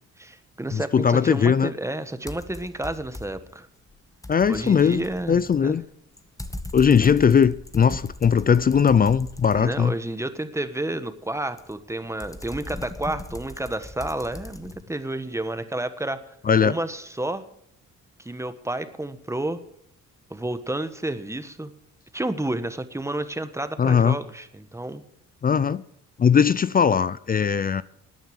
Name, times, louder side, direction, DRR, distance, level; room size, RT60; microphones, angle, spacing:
voice 1, 0.2-3.7 4.5-5.8 9.5-16.2 16.6-17.4 18.2-19.6 20.3-21.7 22.1-25.0, right 1 dB, 10° right, 1.3 m, -30 dB
voice 2, 0.7-1.7 4.3-5.8 6.7-9.9 16.5-16.7 23.8-24.2 25.4-25.8 26.2-27.8, left 7 dB, 30° left, 0.5 m, -19 dB
sound 1, 2.3-3.5 3.9-10.1 11.6-14.8, left 1 dB, 10° left, 1.2 m, -39 dB
13.5 x 9.3 x 7.8 m
cardioid pair, 90°, 30 cm